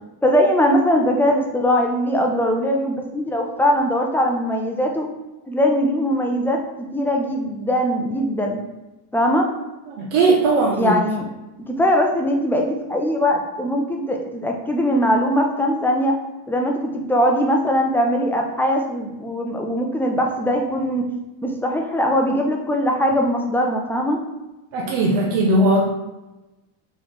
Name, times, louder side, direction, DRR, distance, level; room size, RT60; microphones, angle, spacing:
voice 1, 0.2-5.1 5.5-6.6 6.9-8.6 9.1-9.5 10.8-11.3 11.7-16.2 16.5-21.1 21.4-24.2, equal, 5° left, 1 dB, 0.4 m, -20 dB
voice 2, 9.9-10.9 24.7-25.9, right 2 dB, 75° right, -2 dB, 0.8 m, -18 dB
3.3 x 3.2 x 3.9 m, 1.0 s
cardioid pair, 120°, 44 cm